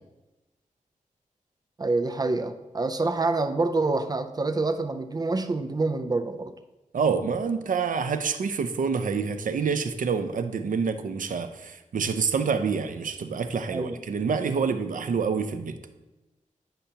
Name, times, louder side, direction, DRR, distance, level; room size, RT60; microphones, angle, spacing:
voice 1, 1.8-6.5 13.7-14.0, right 3 dB, 30° right, 9 dB, 0.4 m, -27 dB
voice 2, 6.9-15.8, right 5 dB, 75° right, 9 dB, 0.5 m, -27 dB
10.5 x 5.6 x 2.8 m, 1.1 s
wide cardioid pair, 140°, 14 cm